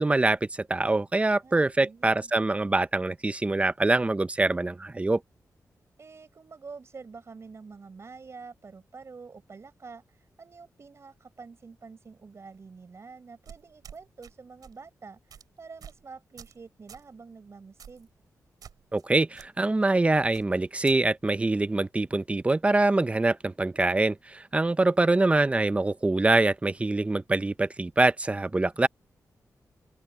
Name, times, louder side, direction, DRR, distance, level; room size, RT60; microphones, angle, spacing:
voice 1, 0.0-5.2 18.9-28.9, right 2 dB, 20° right, 0.6 m, -24 dB
voice 2, 1.4-2.3 6.0-18.1, right 4 dB, 45° right, 5.7 m, -47 dB
sound 1, 13.4-14.3 14.6-14.8 15.3-15.4 15.8-16.0 16.4-16.6 16.9-17.1 17.8-18.1 18.6-19.0 19.3-19.5 20.3-21.0, right 8 dB, 90° right, 7.8 m, -48 dB
open air
wide cardioid pair, 95°, 6 cm